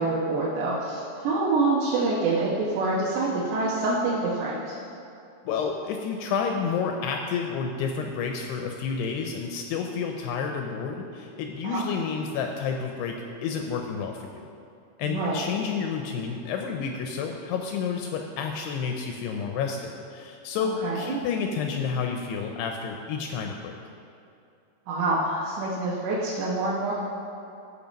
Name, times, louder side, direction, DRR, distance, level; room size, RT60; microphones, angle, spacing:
voice 1, 0.0-4.7 11.6-11.8 15.0-15.4 20.8-21.2 24.9-26.9, right 3 dB, 75° right, -6 dB, 3.2 m, -26 dB
voice 2, 5.4-14.5 15.0-23.7, left 6 dB, 80° left, 3 dB, 2.5 m, -30 dB
14.0 x 5.6 x 5.2 m, 2.6 s
omnidirectional pair, 5.1 m